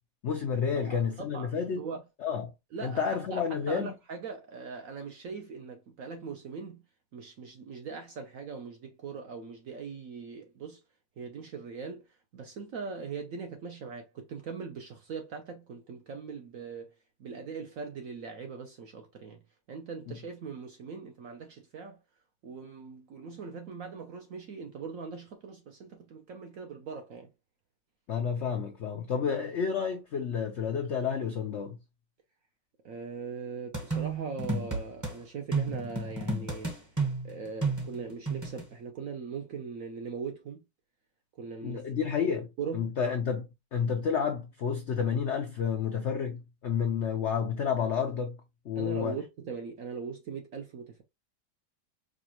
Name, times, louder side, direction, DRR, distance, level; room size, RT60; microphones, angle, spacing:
voice 1, 0.2-1.8 2.2-2.4 2.8-3.9 20.1-20.2 28.1-31.8 41.6-42.5 42.7-48.4 48.6-49.2, left 6 dB, 75° left, 0.6 m, -30 dB
voice 2, 0.8-2.0 2.7-6.8 7.1-10.8 11.2-16.9 17.2-19.4 19.7-22.0 22.4-27.3 32.8-36.7 37.2-40.6 41.4-41.8 42.6-42.9 48.8-51.0, right 5 dB, 65° right, 0.8 m, -40 dB
sound 1, 33.7-35.1 35.5-38.6, right 3 dB, 15° right, 0.6 m, -32 dB
5.0 x 2.3 x 2.9 m
omnidirectional pair, 1.9 m